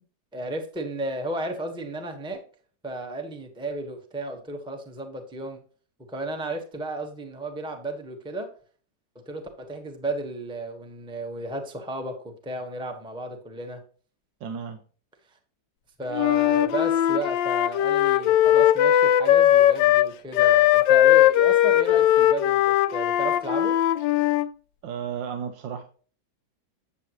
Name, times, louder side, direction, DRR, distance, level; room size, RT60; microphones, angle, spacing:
voice 1, 0.3-2.4 2.8-5.6 6.1-8.5 9.1-13.8 16.0-23.8, right 2 dB, 5° right, 4 dB, 1.1 m, -33 dB
voice 2, 14.4-14.8 24.8-25.8, right 7 dB, 85° right, 8 dB, 1.5 m, -33 dB
Wind instrument woodwind instrument, 16.1-24.5, left 12 dB, 85° left, 1.3 m, -19 dB
9.7 x 7.1 x 3.0 m, 0.42 s
omnidirectional pair, 1.9 m